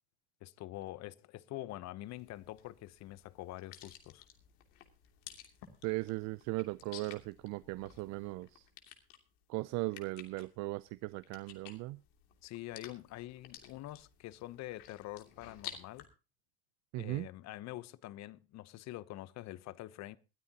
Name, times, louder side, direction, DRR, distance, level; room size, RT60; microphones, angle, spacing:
voice 1, 0.4-4.3 12.4-16.1 17.0-20.2, left 16 dB, 65° left, 1.0 m, -45 dB
sound 1, 2.1-16.0, left 11 dB, 80° left, 3.0 m, -54 dB
voice 2, 5.8-8.6 9.5-12.0 16.9-17.3, right 21 dB, 70° right, 0.6 m, -38 dB
20.5 x 13.0 x 2.9 m
hypercardioid pair, 70°, 30 cm